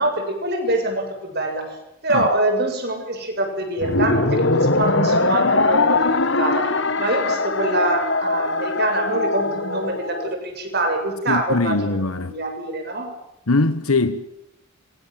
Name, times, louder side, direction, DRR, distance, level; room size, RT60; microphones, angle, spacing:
voice 1, 0.0-1.8 2.0-12.0 12.2-13.1, right 2 dB, 45° right, 7.2 m, -25 dB
sound 1, 3.8-10.3, left 2 dB, 55° left, 1.5 m, -21 dB
voice 2, 11.3-12.3 13.5-14.3, left 3 dB, 80° left, 1.3 m, -21 dB
27.5 x 25.5 x 7.7 m
head